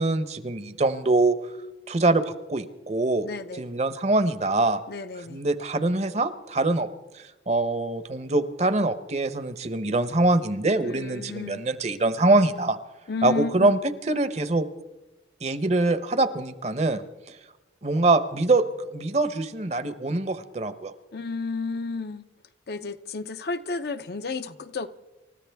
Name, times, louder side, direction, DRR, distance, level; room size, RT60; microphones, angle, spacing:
voice 1, 0.0-1.4 1.9-3.3 3.6-4.8 5.3-6.9 7.1-12.8 13.2-13.8 14.1-14.6 15.4-17.0 17.8-18.6 18.9-20.9, right 2 dB, 35° right, 0.8 m, -24 dB
voice 2, 3.2-3.6 4.9-5.4 10.8-11.6 13.1-13.7 21.1-22.3 22.7-24.9, left 4 dB, 55° left, 0.6 m, -32 dB
28.5 x 14.0 x 3.5 m
head